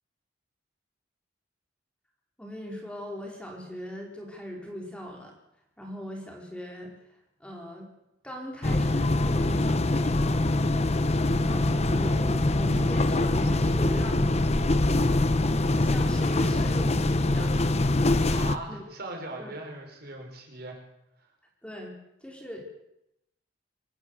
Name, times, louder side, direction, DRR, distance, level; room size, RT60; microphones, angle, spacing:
voice 1, 2.4-5.3 5.8-6.9 7.4-7.9 8.2-10.6 11.5-14.5 15.7-17.8 18.1-18.8 19.4-19.5 21.6-21.9 22.2-22.6, equal, 5° left, 0 dB, 4.3 m, -39 dB
sound 1, 8.6-18.6, left 2 dB, 35° left, 0.9 m, -24 dB
voice 2, 18.2-20.8 21.2-21.3, right 2 dB, 55° right, 2 dB, 5.5 m, -40 dB
25.5 x 13.0 x 8.1 m, 0.83 s
head